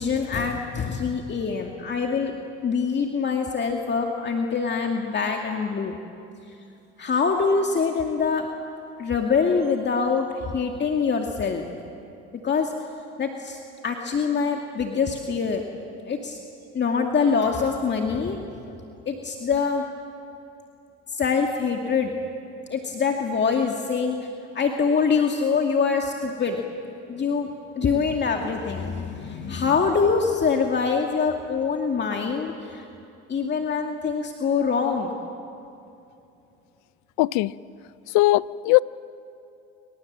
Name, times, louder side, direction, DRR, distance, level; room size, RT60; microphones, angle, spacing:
voice 1, 0.0-2.3 2.6-6.0 6.5-6.6 7.0-8.5 9.0-11.6 12.4-12.7 13.2-15.6 16.0-16.4 16.7-18.4 19.1-19.8 21.1-22.1 22.7-24.2 24.5-26.6 27.1-27.5 27.7-32.9 33.3-35.1, left 5 dB, 35° left, 2 dB, 2.2 m, -24 dB
voice 2, 37.2-37.5 38.1-38.8, left 19 dB, 75° left, 19 dB, 0.7 m, -19 dB
28.0 x 24.5 x 7.5 m, 2.7 s
supercardioid pair, 85°, 29 cm